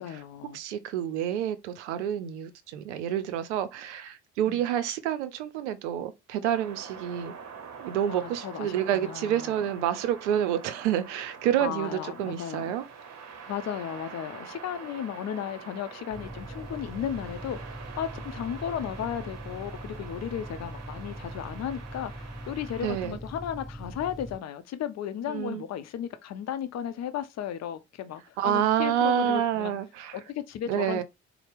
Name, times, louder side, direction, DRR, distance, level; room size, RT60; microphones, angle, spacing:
voice 1, 0.0-0.6 4.5-4.6 8.1-9.5 11.6-12.7 13.5-29.8 30.1-31.0, left 9 dB, 50° left, 0.6 m, -35 dB
voice 2, 0.5-7.3 7.8-12.9 22.8-23.2 25.3-25.6 28.4-30.2 30.7-31.0, right 10 dB, 80° right, 0.5 m, -28 dB
sound 1, 6.5-23.1, right 6 dB, 50° right, 0.9 m, -45 dB
sound 2, 16.1-24.4, equal, ahead, 0.8 m, -41 dB
4.3 x 2.1 x 3.2 m
hypercardioid pair, 45°, 34 cm